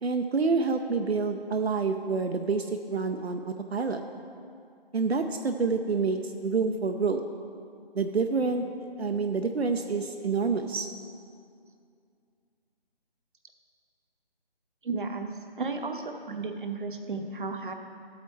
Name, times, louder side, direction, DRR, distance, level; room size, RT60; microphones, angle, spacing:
voice 1, 0.0-4.0 4.9-7.2 7.9-8.6 9.0-10.9, right 4 dB, 85° right, 5 dB, 0.6 m, -27 dB
voice 2, 14.8-15.3 15.6-17.7, right 4 dB, 55° right, 5 dB, 0.8 m, -33 dB
12.5 x 8.1 x 3.2 m, 2.3 s
figure-of-eight pair, 160°, 31 cm